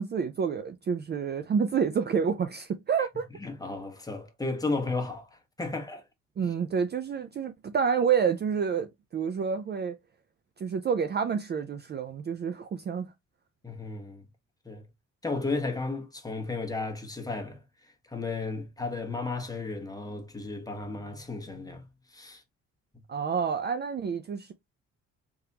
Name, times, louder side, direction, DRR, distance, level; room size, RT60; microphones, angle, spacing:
voice 1, 0.0-3.3 6.4-10.0 10.6-13.1 23.1-24.5, right 6 dB, 35° right, 0.4 m, -28 dB
voice 2, 3.4-6.1 6.4-6.5 13.6-14.3 14.6-14.9 15.2-22.4, left 3 dB, 10° left, 1.2 m, -34 dB
3.5 x 3.4 x 2.7 m
cardioid pair, 90°, 30 cm